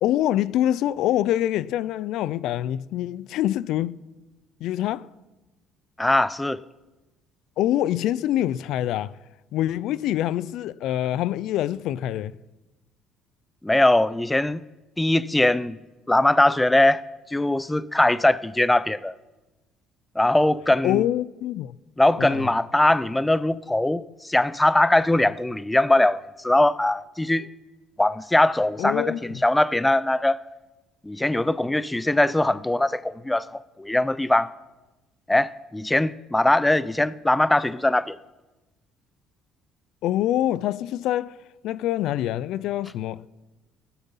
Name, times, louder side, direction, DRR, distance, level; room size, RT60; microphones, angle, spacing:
voice 1, 0.0-4.0 4.6-5.1 7.6-9.2 9.5-12.3 20.8-21.8 22.2-22.5 28.8-29.4 40.0-41.4 41.6-43.3, left 12 dB, 70° left, 0.4 m, -25 dB
voice 2, 6.0-6.6 13.6-14.6 15.0-15.8 16.1-17.0 17.3-19.1 20.2-21.0 22.0-27.5 28.0-30.4 31.0-34.5 35.3-38.2, left 1 dB, 10° left, 0.4 m, -21 dB
16.5 x 11.0 x 5.6 m
cardioid pair, 115°, 0 cm